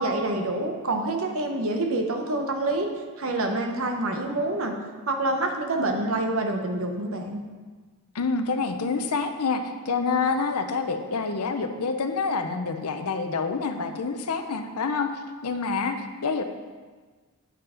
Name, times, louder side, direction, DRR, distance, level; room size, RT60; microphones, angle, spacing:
voice 1, 0.0-2.9 3.2-4.7 5.1-7.4, right 2 dB, 65° right, 4 dB, 1.0 m, -27 dB
voice 2, 8.1-15.1 15.4-16.4, left 4 dB, 85° left, 7 dB, 0.7 m, -27 dB
9.0 x 4.7 x 5.0 m, 1.4 s
head